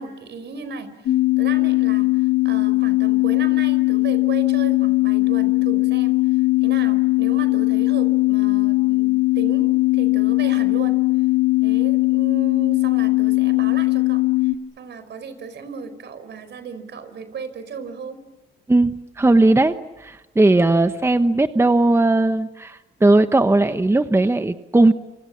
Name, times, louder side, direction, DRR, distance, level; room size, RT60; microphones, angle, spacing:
voice 1, 0.0-10.9 11.6-18.2, right 5 dB, 60° right, 11 dB, 4.6 m, -35 dB
sound 1, 1.1-14.5, left 21 dB, 75° left, 1.7 m, -19 dB
voice 2, 18.7-24.9, right 2 dB, 15° right, 10 dB, 1.0 m, -17 dB
28.5 x 26.5 x 7.3 m, 1.1 s
cardioid pair, 90°, 20 cm